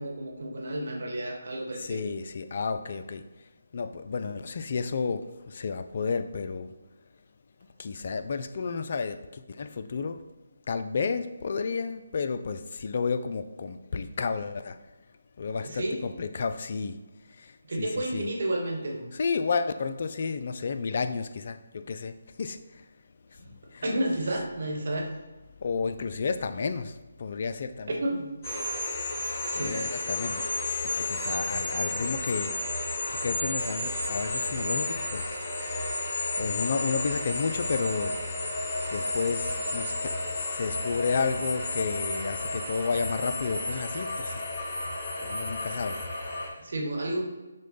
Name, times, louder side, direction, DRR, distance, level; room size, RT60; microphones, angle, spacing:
voice 1, 0.0-2.0 15.6-16.0 17.7-19.1 23.4-23.5 23.8-25.1 28.0-28.3 29.5-29.8 46.6-47.2, right 1 dB, 55° right, 1.1 m, -31 dB
voice 2, 1.8-6.7 7.8-10.3 10.7-14.8 15.4-17.0 17.3-18.3 19.1-22.9 23.3-23.4 23.7-23.9 25.6-28.0 29.5-30.5 30.8-35.4 36.4-38.2 38.9-44.4 45.2-46.1, left 5 dB, 50° left, 0.3 m, -32 dB
sound 1, 28.4-46.5, left 2 dB, 30° left, 0.9 m, -32 dB
6.1 x 2.2 x 3.9 m
figure-of-eight pair, 150°, 0 cm